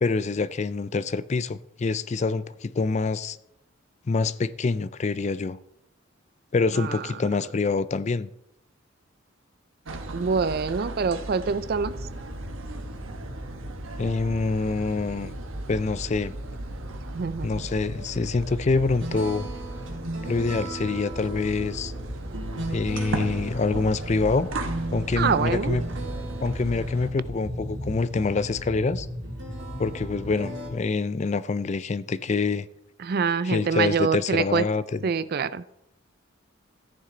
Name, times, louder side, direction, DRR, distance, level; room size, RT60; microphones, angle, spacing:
voice 1, 0.0-3.4 4.1-5.6 6.5-8.3 14.0-15.3 15.7-16.3 17.4-19.5 20.3-21.9 22.7-24.5 24.9-25.8 26.4-29.1 29.8-32.7 33.4-35.0, left 4 dB, 35° left, 0.4 m, -26 dB
sound 1, 9.8-27.1, right 2 dB, 85° right, 1.2 m, -37 dB
voice 2, 10.1-12.0 17.1-17.6 25.2-25.8 33.0-34.6 35.0-35.6, right 5 dB, 50° right, 0.4 m, -25 dB
sound 2, 11.5-29.9, equal, 75° left, 3.6 m, -43 dB
sound 3, 18.6-30.7, right 1 dB, 65° right, 3.1 m, -36 dB
14.0 x 9.6 x 3.9 m
head